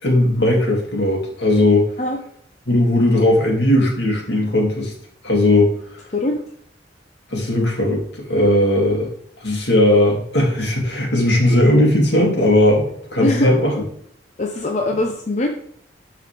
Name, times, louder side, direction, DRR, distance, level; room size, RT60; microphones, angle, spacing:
voice 1, 0.0-1.9 2.7-4.9 5.2-5.7 7.3-9.1 9.4-13.7, left 1 dB, 70° left, -1 dB, 2.5 m, -17 dB
voice 2, 13.2-13.5 14.4-15.5, left 2 dB, 40° left, 1 dB, 0.7 m, -21 dB
13.0 x 4.7 x 3.4 m, 0.67 s
head